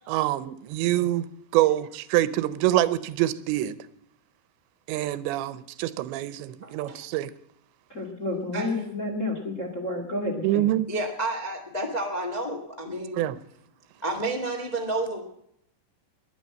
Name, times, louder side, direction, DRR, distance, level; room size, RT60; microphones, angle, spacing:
voice 1, 0.1-1.3 1.5-3.8 4.9-7.3 10.4-10.9 13.1-13.4, right 14 dB, 80° right, 2.9 m, -25 dB
voice 2, 6.6-7.0 8.5-8.7 10.9-13.2 14.0-15.2, right 2 dB, 85° left, 0.3 m, -30 dB
voice 3, 7.9-10.7, left 2 dB, 30° left, 1.4 m, -30 dB
21.0 x 8.9 x 7.5 m
omnidirectional pair, 5.1 m